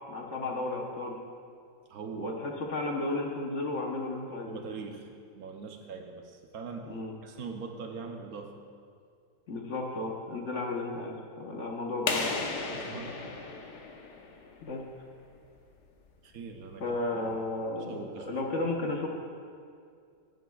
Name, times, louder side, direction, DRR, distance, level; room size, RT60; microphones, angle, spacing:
voice 1, 0.1-1.1 2.2-4.6 6.8-7.1 9.5-12.4 14.6-14.8 16.8-19.1, left 2 dB, 50° left, 0 dB, 1.1 m, -33 dB
voice 2, 1.9-2.3 4.5-8.7 12.7-13.4 16.2-16.9 17.2-17.4 17.8-18.4, right 5 dB, 65° right, 4 dB, 1.1 m, -42 dB
sound 1, 12.1-14.7, left 4 dB, 75° left, 1.5 m, -34 dB
15.5 x 9.2 x 2.3 m, 2.3 s
omnidirectional pair, 1.8 m